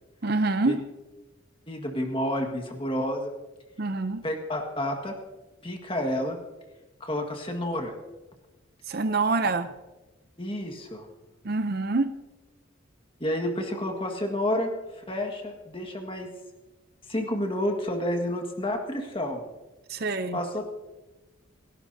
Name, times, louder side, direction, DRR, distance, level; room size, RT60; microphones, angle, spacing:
voice 1, 0.2-0.7 3.8-4.2 8.9-9.7 11.4-12.1 19.9-20.4, right 3 dB, 45° right, 11 dB, 0.6 m, -26 dB
voice 2, 1.7-3.3 4.2-5.2 5.6-6.4 7.0-7.9 10.4-11.1 13.2-16.3 17.1-19.4 20.3-20.6, left 1 dB, 25° left, 3 dB, 1.7 m, -30 dB
28.5 x 12.0 x 2.8 m, 1.1 s
head